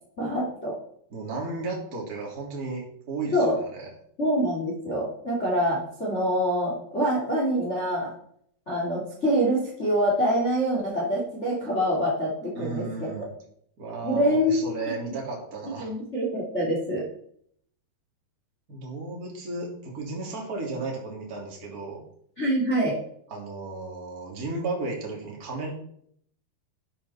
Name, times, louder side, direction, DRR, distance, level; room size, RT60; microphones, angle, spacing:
voice 1, 0.2-0.8 3.3-3.6 4.2-8.1 8.7-13.3 14.0-14.6 14.8-14.9 15.8-17.0 22.4-23.0, equal, 20° left, -3 dB, 2.0 m, -25 dB
voice 2, 1.1-3.9 12.5-13.2 13.8-15.9 18.7-22.0 23.3-25.7, right 3 dB, 25° right, -1 dB, 2.8 m, -34 dB
12.0 x 8.9 x 4.3 m, 0.66 s
omnidirectional pair, 4.7 m